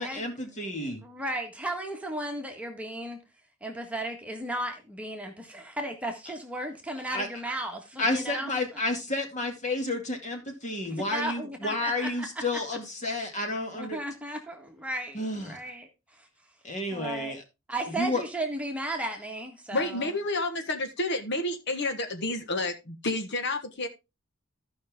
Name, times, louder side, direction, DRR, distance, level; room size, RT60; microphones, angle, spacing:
voice 1, 0.0-1.0 7.1-7.3 8.0-14.0 15.1-15.6 16.6-17.4 17.9-18.2, left 2 dB, 35° left, 2.3 m, -31 dB
voice 2, 0.8-3.2 3.6-8.8 10.8-12.3 13.7-16.3 16.9-17.3 17.7-20.1, right 1 dB, 5° right, 1.6 m, -35 dB
voice 3, 19.7-23.9, left 2 dB, 55° left, 1.4 m, -30 dB
14.5 x 5.6 x 3.6 m
head